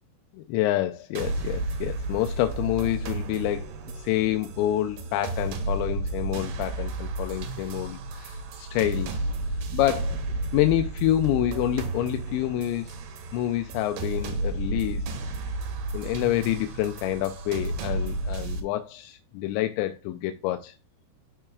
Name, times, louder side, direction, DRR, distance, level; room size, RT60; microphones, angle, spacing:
voice 1, 0.3-9.2 9.7-10.2 10.5-13.0 13.3-15.0 15.9-20.7, left 13 dB, 90° left, 2.9 m, -27 dB
sound 1, 1.2-18.6, right 2 dB, 70° right, 2.9 m, -32 dB
12.0 x 4.6 x 2.3 m
omnidirectional pair, 5.1 m